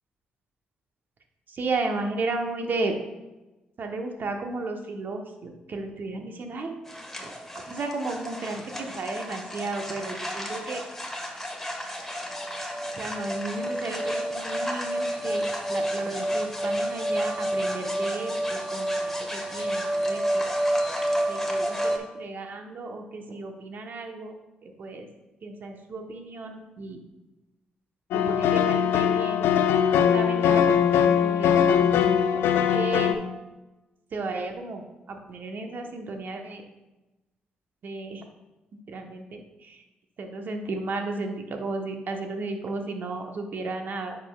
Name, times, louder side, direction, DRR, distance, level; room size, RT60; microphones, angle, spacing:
voice 1, 1.5-2.9 3.8-6.7 7.2-7.3 7.7-10.8 13.0-20.4 21.3-24.3 24.6-25.1 25.4-27.0 28.1-29.5 30.0-32.4 32.7-33.2 34.1-36.6 37.8-38.2 38.9-39.8 40.2-44.2, right 3 dB, 55° right, 4 dB, 1.0 m, -34 dB
sound 1, 6.9-22.0, equal, 5° left, 1.5 m, -30 dB
sound 2, 28.1-33.1, left 8 dB, 80° left, 0.4 m, -21 dB
9.3 x 5.5 x 2.3 m, 1.1 s
supercardioid pair, 50°, 4 cm